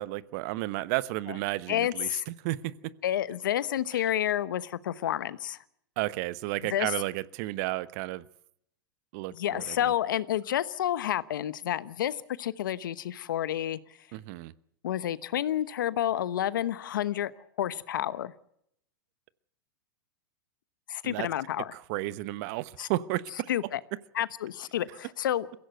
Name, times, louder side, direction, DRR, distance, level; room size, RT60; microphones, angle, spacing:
voice 1, 0.0-2.9 6.0-8.2 9.1-9.9 14.1-14.5 21.0-21.3 21.7-23.5, right 18 dB, 55° right, 17 dB, 1.0 m, -33 dB
voice 2, 1.7-2.3 3.0-5.6 6.7-6.9 9.3-13.8 14.8-17.3 17.6-18.3 20.9-21.7 22.8-22.9 23.5-23.8 24.1-25.5, left 11 dB, 75° left, 16 dB, 1.0 m, -30 dB
23.0 x 16.0 x 7.9 m, 0.72 s
hypercardioid pair, 110°, 11 cm